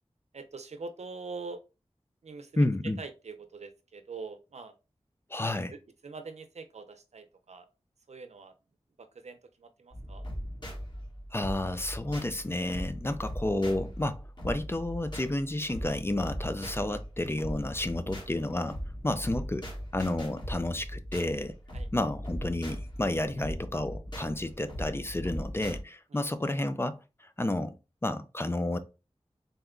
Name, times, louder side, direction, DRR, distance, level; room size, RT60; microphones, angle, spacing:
voice 1, 0.3-1.6 2.2-2.6 3.0-4.7 5.7-5.8 6.0-7.6 8.1-8.5 9.0-10.2 16.9-17.0 21.7-21.9, right 4 dB, 80° right, 0.6 m, -43 dB
voice 2, 2.6-3.0 5.3-5.7 11.3-18.8 19.0-19.7 19.9-21.6 21.9-27.7 28.0-28.8, left 1 dB, 20° left, 0.4 m, -31 dB
sound 1, 9.9-25.8, equal, 40° left, 1.5 m, -39 dB
4.0 x 2.2 x 3.6 m
wide cardioid pair, 60°, 11 cm